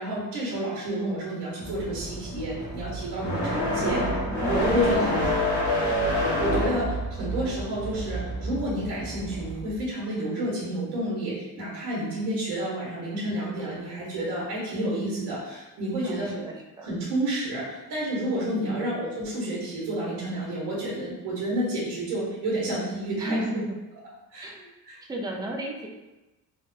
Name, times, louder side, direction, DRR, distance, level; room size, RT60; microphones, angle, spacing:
voice 1, 0.0-4.2 4.5-5.3 5.9-16.4 16.8-23.6 24.3-24.5 24.8-25.0, right 1 dB, 90° right, -6 dB, 1.1 m, -30 dB
voice 2, 0.9-1.3 4.0-5.3 16.0-16.9 18.6-19.0 23.2-23.8 24.4-24.7 25.1-25.9, right 1 dB, 10° right, 0 dB, 0.4 m, -34 dB
sound 1, 1.6-9.5, left 1 dB, 85° left, 1.4 m, -28 dB
sound 2, 1.6-9.9, right 3 dB, 60° left, 1.3 m, -37 dB
3.2 x 2.2 x 2.7 m, 1.0 s
cardioid pair, 95°, 39 cm